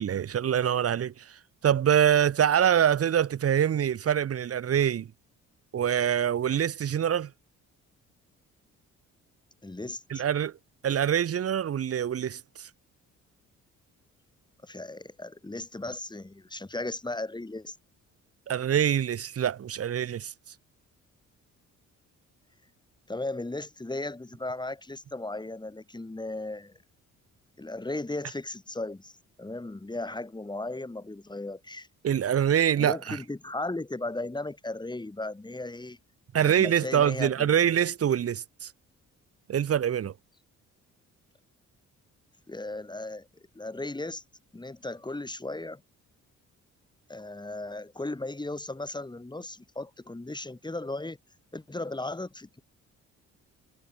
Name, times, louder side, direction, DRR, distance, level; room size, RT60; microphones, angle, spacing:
voice 1, 0.0-5.1 5.7-7.3 10.1-10.5 10.8-12.4 18.5-20.3 32.0-33.2 36.3-38.7 39.5-40.1, right 9 dB, 50° right, 1.4 m, -25 dB
voice 2, 9.6-10.2 14.6-17.7 23.1-26.7 27.6-31.9 32.8-36.0 36.4-37.7 42.5-43.3 43.5-44.2 44.5-45.8 47.1-51.2 51.5-52.6, left 2 dB, 15° left, 6.3 m, -36 dB
cardioid pair, 90°, 30 cm